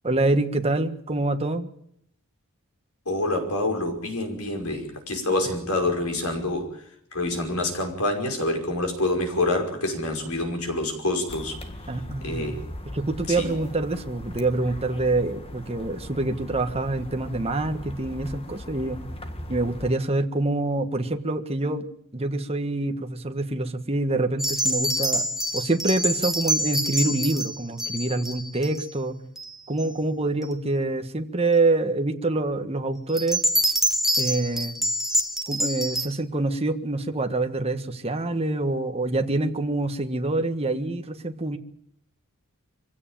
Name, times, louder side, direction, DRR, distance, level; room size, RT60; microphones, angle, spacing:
voice 1, 0.0-1.7 11.9-12.6 12.9-19.0 19.5-21.9 22.1-25.3 25.5-29.2 29.7-33.4 34.2-34.7 35.5-41.6, right 2 dB, 25° right, 6 dB, 1.5 m, -26 dB
voice 2, 3.1-6.8 7.1-11.9 12.2-12.6 13.3-13.5, left 2 dB, 80° left, 3 dB, 5.5 m, -27 dB
sound 1, 11.3-19.9, left 1 dB, 25° left, 1.8 m, -39 dB
sound 2, 24.4-28.9 29.4-29.9 30.4-30.5 33.1-36.1, equal, ahead, 1.7 m, -26 dB
24.0 x 16.5 x 9.0 m, 0.72 s
head